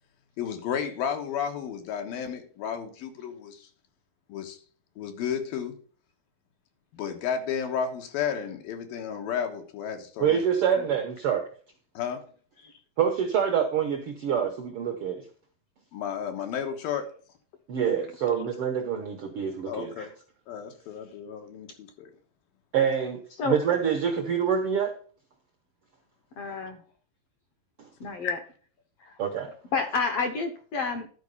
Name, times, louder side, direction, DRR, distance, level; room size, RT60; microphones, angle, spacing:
voice 1, 0.4-3.7 4.3-4.6 5.0-5.8 6.9-10.4 10.8-10.9 11.9-12.3 15.9-17.2 19.7-20.1 20.5-22.1 28.2-28.3, left 7 dB, 85° left, 3.2 m, -32 dB
voice 2, 10.2-11.5 13.0-15.2 17.7-20.1 22.7-23.2 23.4-24.9 29.2-29.5, right 8 dB, 75° right, 1.3 m, -26 dB
voice 3, 26.4-26.8 28.0-28.4 29.0-29.2 29.7-31.1, left 4 dB, 70° left, 1.5 m, -29 dB
12.0 x 4.8 x 5.4 m
omnidirectional pair, 4.0 m